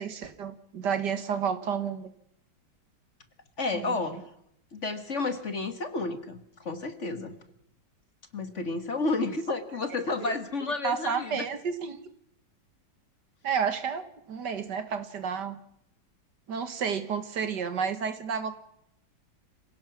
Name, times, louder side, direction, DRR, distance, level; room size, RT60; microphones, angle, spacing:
voice 1, 0.0-2.1 3.7-4.0 10.8-12.0 13.4-15.6 16.5-18.5, right 6 dB, 60° right, 10 dB, 1.9 m, -31 dB
voice 2, 3.6-4.2 4.7-7.4 8.3-11.5, left 3 dB, 40° left, 9 dB, 1.6 m, -31 dB
26.0 x 17.0 x 6.0 m, 0.72 s
omnidirectional pair, 2.1 m